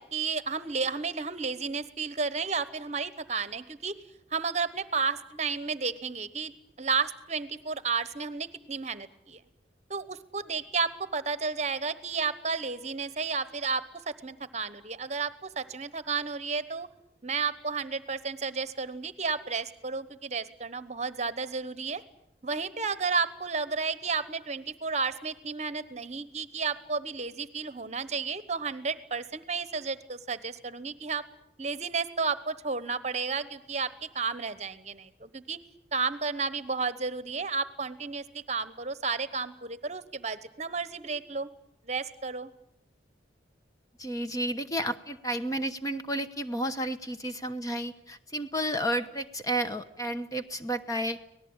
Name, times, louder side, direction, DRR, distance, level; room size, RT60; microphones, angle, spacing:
voice 1, 0.0-4.0 4.3-6.5 6.8-9.4 9.9-16.9 17.2-22.0 22.4-31.2 31.6-35.6 35.9-41.5 41.8-42.5, right 4 dB, 35° right, 15 dB, 1.0 m, -32 dB
voice 2, 44.0-51.2, right 1 dB, 20° left, 8 dB, 1.0 m, -31 dB
25.5 x 18.5 x 8.9 m, 0.78 s
head